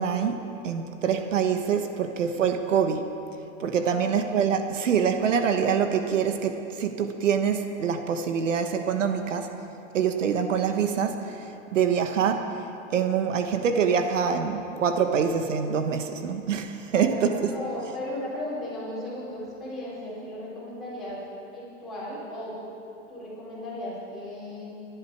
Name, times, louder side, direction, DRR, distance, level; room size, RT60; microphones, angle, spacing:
voice 1, 0.0-3.1 3.6-9.5 9.9-12.6 12.9-17.5, right 7 dB, 70° right, 6 dB, 1.3 m, -25 dB
voice 2, 3.8-4.3 16.9-21.2 21.5-22.5 23.1-24.7, left 1 dB, ahead, -11 dB, 4.1 m, -36 dB
22.5 x 10.5 x 4.6 m, 2.9 s
hypercardioid pair, 170°, 38 cm